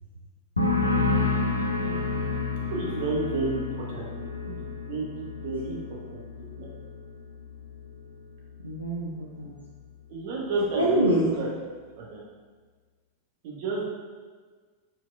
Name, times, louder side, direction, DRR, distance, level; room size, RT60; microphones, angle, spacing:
sound 1, 0.6-8.0 8.3-8.8, left 3 dB, 85° left, 0.4 m, -30 dB
voice 1, 1.5-2.3 2.9-3.0 8.6-9.1 9.4-9.5 10.8-11.3, right 1 dB, 80° right, -5 dB, 0.5 m, -27 dB
voice 2, 2.7-5.8 6.1-6.2 6.6-6.7 10.1-11.5 11.9-12.2 13.4-13.9, right 3 dB, 50° right, -3 dB, 1.0 m, -31 dB
4.4 x 3.9 x 2.4 m, 1.5 s
figure-of-eight pair, 90°, 0 cm